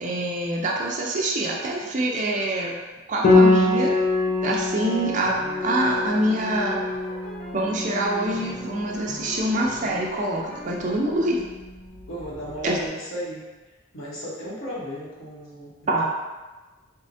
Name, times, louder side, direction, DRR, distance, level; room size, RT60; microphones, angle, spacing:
voice 1, 0.0-2.7 3.1-4.0 4.4-5.4 5.6-6.8 7.5-11.4 12.6-12.8 15.9-16.0, right 1 dB, 35° right, -2 dB, 0.5 m, -25 dB
Piano, 3.2-12.6, left 2 dB, 45° left, 0.6 m, -25 dB
sound 1, 5.2-11.0, left 1 dB, 5° left, 0.8 m, -40 dB
voice 2, 12.1-13.5 13.9-16.1, equal, 80° left, -6 dB, 0.9 m, -35 dB
4.4 x 2.1 x 2.6 m, 1.2 s
head